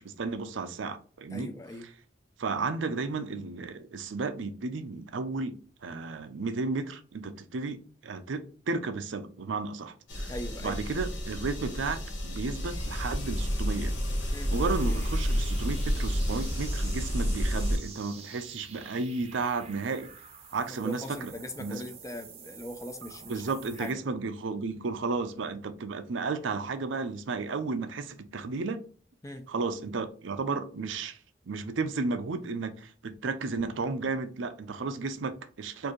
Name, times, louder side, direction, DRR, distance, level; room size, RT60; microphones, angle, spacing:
voice 1, 0.0-1.5 2.4-10.3 10.6-13.9 14.5-20.1 20.5-21.3 21.6-21.8 23.3-28.8 29.5-31.2 31.5-35.9, right 4 dB, 75° right, 0.5 m, -33 dB
voice 2, 1.3-1.9 10.3-10.8 14.3-14.5 20.6-24.0 29.2-29.4, left 1 dB, 15° left, 0.5 m, -40 dB
sound 1, 10.1-17.8, equal, 70° left, 1.1 m, -30 dB
sound 2, 14.5-23.9, right 6 dB, 30° right, 0.6 m, -48 dB
4.4 x 2.6 x 3.0 m
head